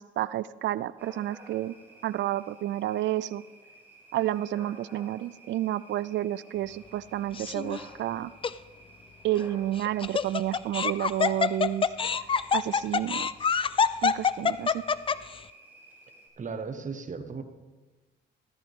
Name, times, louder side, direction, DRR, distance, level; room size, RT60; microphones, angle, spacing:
voice 1, 0.0-1.8 2.0-3.4 4.1-8.3 9.2-11.9 12.5-13.3 14.0-14.8, right 13 dB, 65° right, 17 dB, 0.4 m, -30 dB
sound 1, 1.0-16.3, right 2 dB, 10° right, 4.6 m, -53 dB
Laughter, 7.3-7.8 8.4-8.5 9.8-15.4, left 6 dB, 25° left, 0.4 m, -26 dB
voice 2, 16.4-17.4, right 5 dB, 40° right, 7 dB, 1.3 m, -36 dB
14.0 x 13.5 x 3.6 m, 1.2 s
cardioid pair, 90°, 20 cm